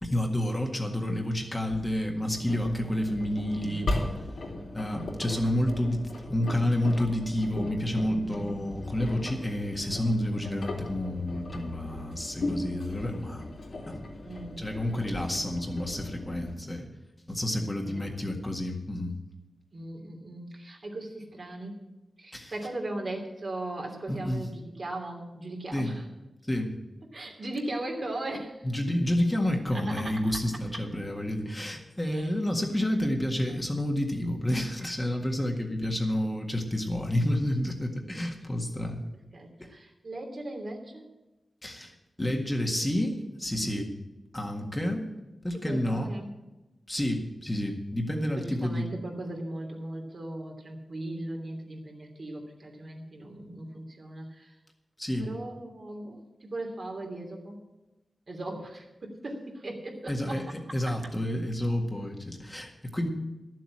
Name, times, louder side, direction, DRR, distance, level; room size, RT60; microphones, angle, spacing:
voice 1, 0.0-3.9 4.7-14.0 14.6-16.9 17.3-19.2 22.3-22.5 24.1-24.4 25.7-25.9 26.5-26.8 28.6-39.0 41.6-43.9 44.3-45.1 45.4-46.1 46.9-48.9 55.0-55.3 60.1-60.5 60.7-63.1, left 1 dB, 15° left, 2 dB, 1.8 m, -29 dB
Engine, 2.3-16.5, left 2 dB, 80° left, 3.1 m, -37 dB
voice 2, 3.5-3.9 8.1-8.4 14.2-14.6 17.5-18.2 19.7-21.7 22.2-26.0 27.1-28.7 29.7-30.1 32.0-32.3 33.5-33.6 39.3-41.1 43.6-43.9 45.6-46.3 48.4-54.5 55.2-57.6 58.3-60.4, right 1 dB, 55° right, 1 dB, 2.9 m, -38 dB
12.0 x 7.6 x 8.6 m, 1.0 s
wide cardioid pair, 80°, 0 cm